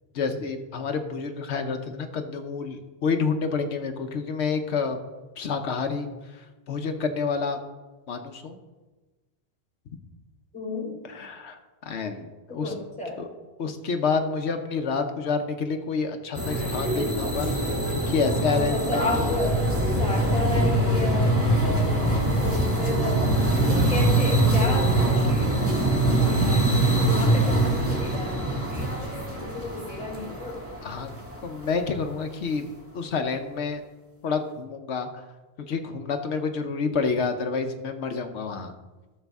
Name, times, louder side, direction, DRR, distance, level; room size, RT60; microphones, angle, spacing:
voice 1, 0.1-5.0 5.4-7.6 8.1-8.6 11.0-12.7 13.2-13.3 13.6-19.3 30.8-31.1 31.4-32.7 32.9-33.8 34.2-35.3 35.6-38.7, left 5 dB, 85° left, 6 dB, 1.0 m, -29 dB
voice 2, 10.5-11.0 12.5-13.2 18.5-23.3 23.6-25.6 26.0-30.6, left 2 dB, 5° left, -1 dB, 2.2 m, -32 dB
sound 1, 16.3-31.6, right 1 dB, 15° right, 1.7 m, -23 dB
13.0 x 6.6 x 3.5 m, 1.2 s
omnidirectional pair, 1.1 m